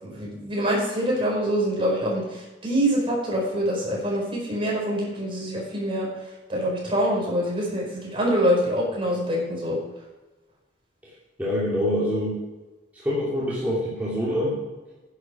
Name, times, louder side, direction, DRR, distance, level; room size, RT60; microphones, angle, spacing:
voice 1, 0.0-6.1 6.5-9.8, equal, 30° right, -3 dB, 4.8 m, -25 dB
voice 2, 11.4-12.4 12.9-14.6, left 1 dB, 10° right, -9 dB, 2.8 m, -25 dB
10.5 x 8.9 x 6.0 m, 1.2 s
head